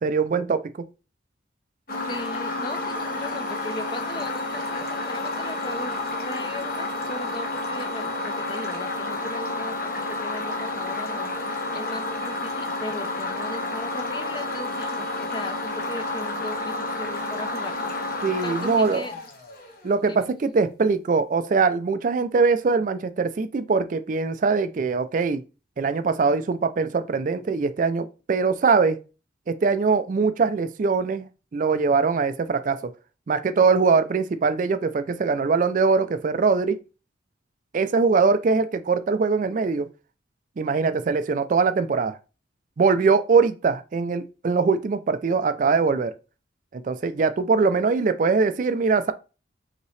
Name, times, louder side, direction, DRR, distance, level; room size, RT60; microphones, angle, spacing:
voice 1, 0.0-0.6 18.2-19.0 19.8-25.4 25.8-29.0 29.5-32.9 33.3-36.8 37.7-39.9 40.6-42.2 42.8-46.1 46.7-49.1, right 4 dB, 45° right, 0.3 m, -22 dB
sound 1, 1.9-19.9, left 2 dB, 50° left, 1.0 m, -30 dB
voice 2, 2.1-19.1 20.0-20.3, left 1 dB, 25° left, 0.5 m, -38 dB
5.3 x 2.9 x 3.2 m
head